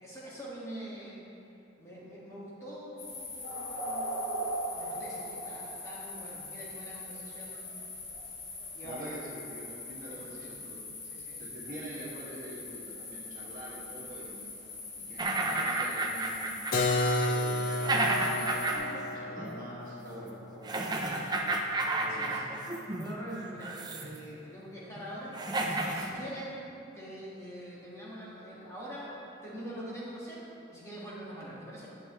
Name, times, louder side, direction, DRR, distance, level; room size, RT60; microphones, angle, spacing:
voice 1, 0.0-1.2 1.8-4.3 4.7-7.8 8.7-9.2 10.1-10.5 11.1-11.4 20.9-21.2 22.0-22.4 22.7-26.6 26.9-29.1 29.4-30.4 30.7-31.9, equal, 15° left, -7 dB, 1.7 m, -44 dB
sound 1, 3.0-18.8, left 1 dB, 65° left, 1.7 m, -41 dB
voice 2, 8.8-10.8 11.4-14.4 15.0-16.6 17.2-21.5 22.0-22.3 26.0-26.2, right 1 dB, 45° right, -6 dB, 1.7 m, -45 dB
sound 2, 15.2-19.1 19.4-19.5 20.6-23.1 23.6-24.2 24.9-25.0 25.3-26.1, right 2 dB, 20° right, 0.5 m, -32 dB
Keyboard (musical), 16.7-22.3, left 2 dB, 50° left, 0.6 m, -33 dB
10.5 x 8.2 x 3.1 m, 2.7 s
head